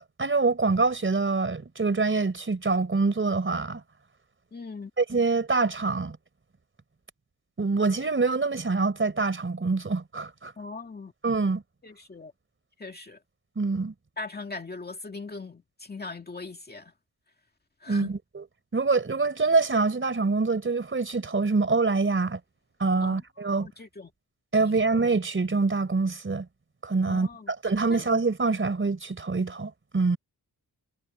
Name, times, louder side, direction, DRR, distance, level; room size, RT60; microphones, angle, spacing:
voice 1, 0.0-3.8 5.0-6.2 7.6-10.5 11.2-11.6 13.6-13.9 17.9-18.4 18.7-22.4 22.8-23.7 24.5-26.5 26.8-30.2, right 4 dB, 30° right, 3.8 m, -25 dB
voice 2, 4.5-4.9 10.6-11.1 11.8-12.3 12.8-13.2 14.2-16.9 17.8-18.1 23.0-24.1 24.6-24.9 27.1-27.5 27.9-28.0, left 3 dB, 25° left, 2.1 m, -40 dB
wide cardioid pair, 165°, 39 cm